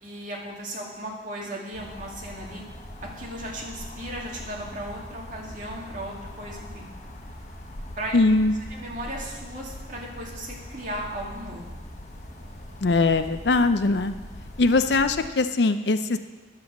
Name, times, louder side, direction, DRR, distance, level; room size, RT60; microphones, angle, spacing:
voice 1, 0.0-2.6 3.0-6.9 8.0-8.2 8.7-11.6, right 1 dB, 45° right, -2 dB, 2.3 m, -36 dB
sound 1, 1.7-15.3, left 1 dB, 40° left, 1.4 m, -41 dB
voice 2, 8.1-8.5 12.8-14.1 14.6-16.2, left 3 dB, 70° left, 10 dB, 0.6 m, -21 dB
10.5 x 7.6 x 7.3 m, 1.2 s
head